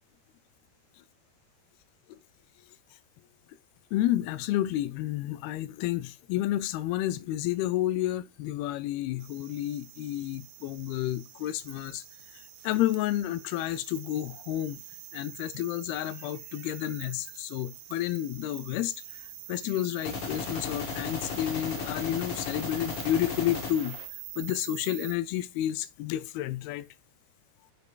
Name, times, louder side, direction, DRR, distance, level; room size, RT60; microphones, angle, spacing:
voice 1, 3.9-12.0 12.3-14.8 15.1-19.0 19.5-24.0 24.4-26.9, left 13 dB, 90° left, 2.5 m, -30 dB
sound 1, 9.2-25.2, right 13 dB, 75° right, 2.2 m, -45 dB
sound 2, 20.0-24.1, left 5 dB, 60° left, 1.6 m, -36 dB
8.1 x 6.6 x 2.3 m
omnidirectional pair, 4.3 m